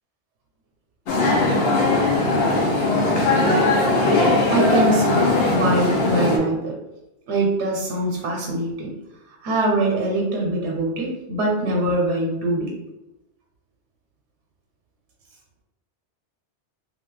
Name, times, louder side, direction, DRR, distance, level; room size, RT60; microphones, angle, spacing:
sound 1, 1.1-6.4, left 2 dB, 65° left, 0.8 m, -19 dB
voice 1, 4.5-6.7 7.3-8.9 9.4-12.7, right 1 dB, 90° right, -1 dB, 1.0 m, -23 dB
2.7 x 2.3 x 3.2 m, 0.96 s
omnidirectional pair, 1.2 m